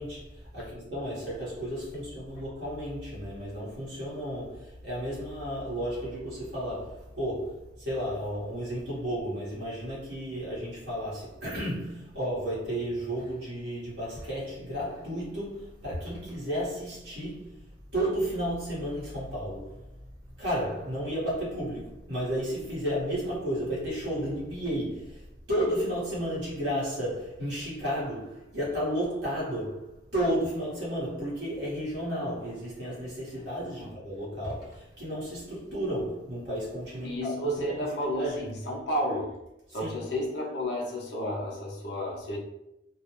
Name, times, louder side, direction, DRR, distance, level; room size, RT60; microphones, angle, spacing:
voice 1, 0.0-17.6 17.9-38.5 39.8-40.1, equal, 70° right, 0.9 m, -33 dB
voice 2, 37.0-39.3 39.7-42.4, equal, 70° left, 0.6 m, -31 dB
2.4 x 2.0 x 2.8 m
head